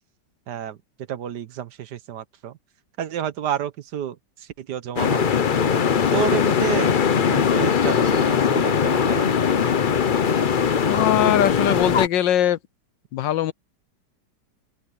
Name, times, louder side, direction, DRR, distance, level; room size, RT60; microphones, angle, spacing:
voice 1, 0.5-0.8 1.1-2.6 3.0-5.5 6.1-6.9 7.3-9.3, right 9 dB, 70° right, 1.5 m, -30 dB
sound 1, 5.0-12.1, left 7 dB, 50° left, 0.6 m, -20 dB
voice 2, 10.8-12.6 13.1-13.5, left 10 dB, 85° left, 1.6 m, -21 dB
open air
omnidirectional pair, 1.9 m